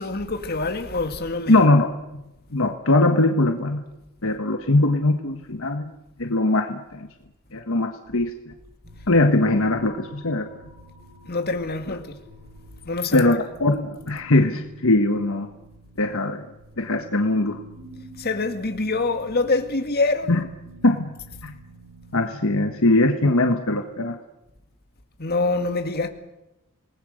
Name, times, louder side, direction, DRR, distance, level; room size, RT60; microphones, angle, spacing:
voice 1, 0.0-1.6 11.2-12.2 12.9-13.4 18.2-20.4 25.2-26.1, left 3 dB, 45° left, 2.2 m, -25 dB
voice 2, 1.5-2.2 2.5-3.8 4.2-5.9 6.2-7.1 7.5-8.5 9.1-10.5 11.9-12.0 13.1-15.5 16.0-16.5 16.8-17.6 20.3-20.4 20.8-21.1 21.4-21.5 22.1-24.2, left 2 dB, 65° left, 1.5 m, -21 dB
sound 1, 8.8-22.6, right 2 dB, 50° right, 6.6 m, -48 dB
28.0 x 19.5 x 6.6 m
head